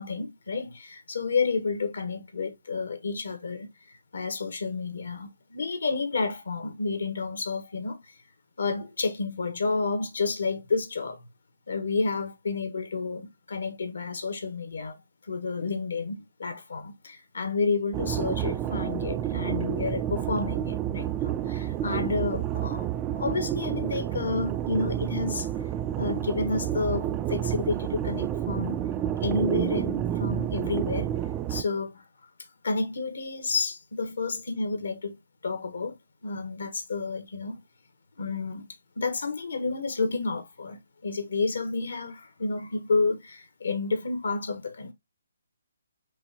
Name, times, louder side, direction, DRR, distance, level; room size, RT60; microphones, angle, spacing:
voice 1, 0.0-3.7 4.1-8.0 8.6-11.2 11.7-14.9 15.3-22.9 23.2-25.5 26.0-28.8 29.2-31.1 31.5-32.0 32.6-35.1 35.4-35.9 36.2-37.6 38.2-38.7 39.0-44.9, left 4 dB, 75° left, 1.3 m, -30 dB
sound 1, 17.9-31.6, right 11 dB, 20° right, 0.3 m, -29 dB
5.4 x 2.9 x 2.8 m
hypercardioid pair, 150°, 0 cm